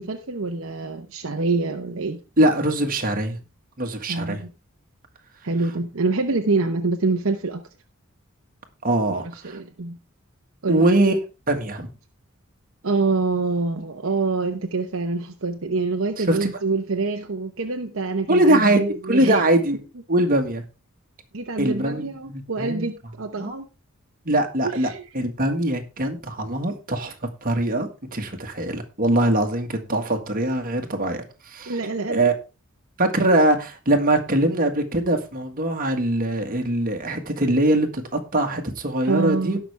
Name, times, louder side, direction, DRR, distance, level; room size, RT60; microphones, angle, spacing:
voice 1, 0.0-2.2 4.1-4.5 5.4-7.6 9.1-9.2 9.4-10.0 10.6-10.8 12.8-19.4 21.3-23.7 24.6-25.0 31.7-32.3 39.0-39.6, right 3 dB, 65° right, 1.0 m, -26 dB
voice 2, 2.4-3.4 3.8-4.4 8.8-9.6 10.7-11.2 11.5-11.9 16.2-16.4 18.3-18.8 19.1-19.8 20.1-20.6 21.6-22.9 23.4-23.6 24.2-27.1 27.4-31.8 32.1-32.3 33.0-38.0 38.3-39.6, right 1 dB, 40° right, 1.7 m, -22 dB
17.5 x 6.1 x 3.4 m
head